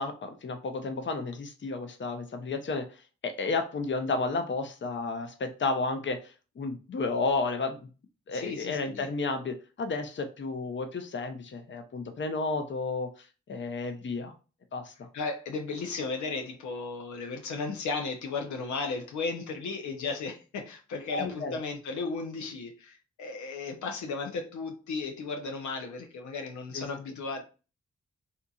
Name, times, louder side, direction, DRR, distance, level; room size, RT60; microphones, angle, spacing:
voice 1, 0.0-2.9 3.2-7.8 8.3-14.3 14.7-15.1 21.1-21.6 26.7-26.8, left 3 dB, 40° left, 0.6 m, -32 dB
voice 2, 8.3-9.1 15.1-27.4, left 4 dB, 80° left, 0.6 m, -35 dB
2.7 x 2.6 x 2.3 m
supercardioid pair, 40°, 29 cm